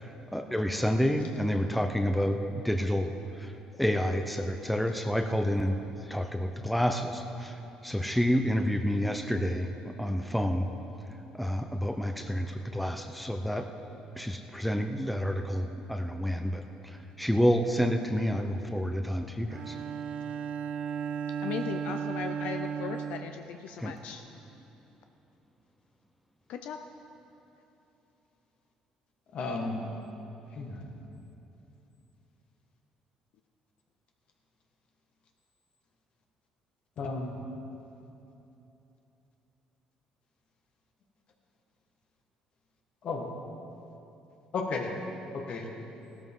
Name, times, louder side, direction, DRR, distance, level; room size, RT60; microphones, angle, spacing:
voice 1, 0.0-3.5 3.8-5.8 6.0-10.7 11.3-13.7 14.1-19.8 23.8-23.9, equal, ahead, 5 dB, 0.7 m, -29 dB
Bowed string instrument, 19.5-24.1, right 7 dB, 60° right, 0.6 m, -35 dB
voice 2, 21.4-24.2 26.5-26.8, left 7 dB, 75° left, 6 dB, 0.6 m, -37 dB
voice 3, 29.3-29.8 30.6-30.9 37.0-37.4 43.0-43.3 44.5-44.9 45.3-45.7, left 3 dB, 55° left, 1 dB, 1.8 m, -33 dB
16.0 x 13.0 x 3.8 m, 3.0 s
cardioid pair, 105°, 2 cm